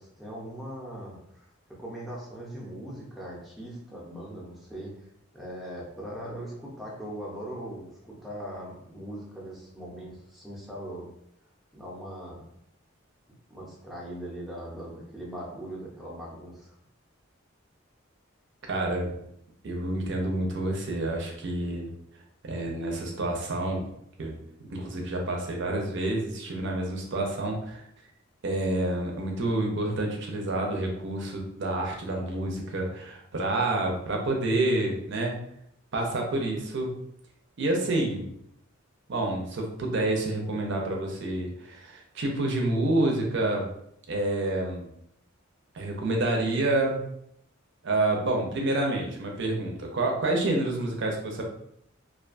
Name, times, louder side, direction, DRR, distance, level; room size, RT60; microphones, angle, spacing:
voice 1, 0.0-1.5 1.8-4.9 5.3-11.1 11.7-12.4 13.5-16.7, right 1 dB, ahead, -5 dB, 0.6 m, -40 dB
voice 2, 18.7-19.1 19.6-21.9 22.4-23.8 24.2-24.3 24.7-27.9 28.4-35.4 35.9-36.9 37.6-38.4 39.1-43.7 44.1-44.9 45.7-47.0 47.8-51.4, right 2 dB, 60° right, 1 dB, 0.5 m, -28 dB
2.4 x 2.2 x 2.5 m, 0.74 s
head